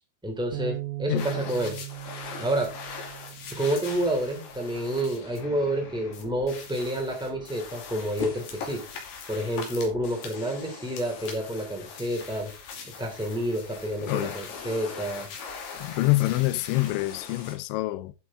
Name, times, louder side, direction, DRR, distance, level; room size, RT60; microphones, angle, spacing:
voice 1, 0.2-1.8 2.4-2.7 3.6-8.8 9.3-12.5 13.0-15.3, right 1 dB, 5° right, 0.3 m, -29 dB
Bass guitar, 0.5-4.9 5.6-6.8, right 17 dB, 85° right, 3.7 m, -40 dB
sound 1, 1.2-17.6, left 5 dB, 60° left, 4.0 m, -41 dB
voice 2, 15.7-18.1, left 19 dB, 85° left, 2.7 m, -26 dB
11.0 x 8.5 x 3.6 m
omnidirectional pair, 5.9 m